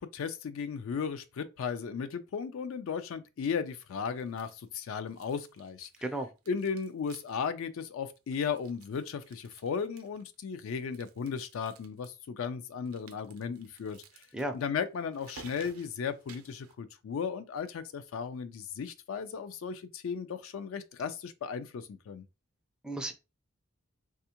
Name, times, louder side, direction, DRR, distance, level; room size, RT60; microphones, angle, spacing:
voice 1, 0.0-5.9 6.5-14.2 14.5-22.2, left 6 dB, 70° left, 0.3 m, -36 dB
sound 1, 4.1-4.8 5.1-6.1 6.4-7.5 7.8-7.9 8.1-10.3 10.8-12.1 12.9-16.7, right 6 dB, 80° right, 0.5 m, -56 dB
voice 2, 6.0-6.3 14.3-14.6 22.8-23.1, right 1 dB, 5° right, 0.3 m, -33 dB
3.4 x 2.3 x 2.8 m
head